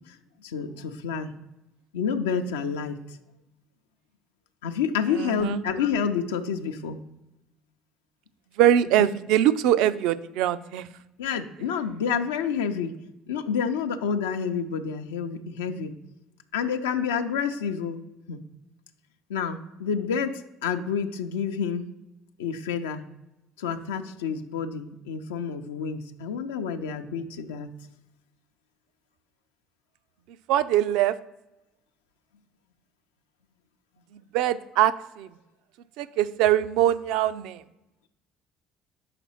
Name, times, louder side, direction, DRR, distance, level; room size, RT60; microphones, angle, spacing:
voice 1, 0.4-1.3 1.9-3.2 4.6-7.0 11.2-12.9 13.3-15.9 16.5-18.0 18.3-18.4 19.3-21.9 22.4-23.0 23.6-27.7, left 6 dB, 85° left, 5 dB, 0.5 m, -29 dB
voice 2, 5.1-5.6 8.6-10.8 30.5-31.1 34.3-34.9 35.2-35.3 36.0-37.6, right 11 dB, 70° right, 14 dB, 0.4 m, -22 dB
5.8 x 4.2 x 5.5 m, 0.93 s
hypercardioid pair, 65°, 0 cm